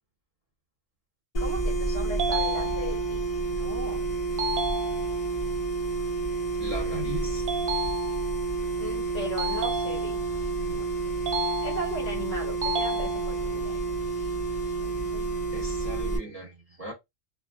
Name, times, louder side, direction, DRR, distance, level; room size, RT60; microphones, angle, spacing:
sound 1, 1.3-16.2, right 3 dB, 35° left, 0.8 m, -29 dB
voice 1, 1.4-3.2 3.5-4.0 8.8-10.2 10.6-10.8 11.6-13.8 14.8-15.4, left 1 dB, 60° left, 1.3 m, -37 dB
sound 2, 2.2-3.2 4.4-5.4 7.5-8.5 9.4-10.4 11.3-12.2 12.6-13.6, right 1 dB, 60° right, 0.7 m, -32 dB
voice 2, 6.6-7.5 15.5-16.9, right 1 dB, 35° right, 0.9 m, -37 dB
2.5 x 2.3 x 2.2 m
omnidirectional pair, 1.2 m